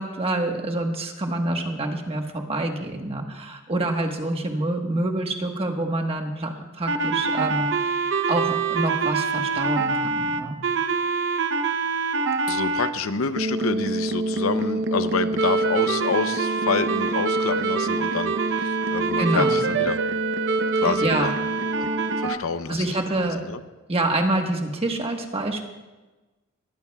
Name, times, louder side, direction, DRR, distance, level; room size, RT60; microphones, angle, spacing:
voice 1, 0.0-10.6 19.2-19.6 20.8-21.3 22.7-23.4 23.9-25.7, right 2 dB, 30° right, 3 dB, 1.3 m, -27 dB
sound 1, 6.9-12.9 13.4-22.4, right 3 dB, 60° right, 0.8 m, -24 dB
voice 2, 12.5-20.0 20.7-21.3 21.8-21.9 22.2-23.6, left 4 dB, 85° left, 11 dB, 0.7 m, -28 dB
21.0 x 14.5 x 2.3 m, 1.2 s
head